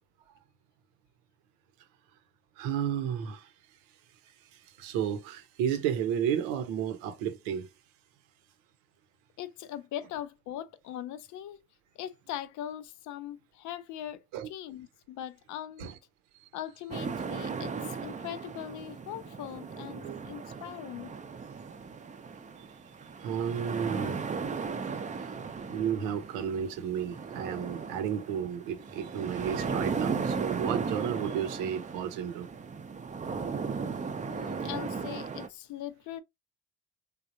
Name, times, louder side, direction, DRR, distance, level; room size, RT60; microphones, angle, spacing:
voice 1, 2.6-3.5 4.8-7.7 14.3-14.5 15.8-15.9 16.4-16.5 20.0-20.2 23.2-24.2 25.7-32.5, right 8 dB, 75° right, 0.8 m, -32 dB
voice 2, 9.4-11.6 12.0-15.8 16.5-21.1 34.2-36.2, left 11 dB, 60° left, 0.5 m, -40 dB
sound 1, 16.9-35.5, right 5 dB, 20° right, 0.5 m, -36 dB
3.3 x 2.3 x 2.6 m
hypercardioid pair, 60°, 35 cm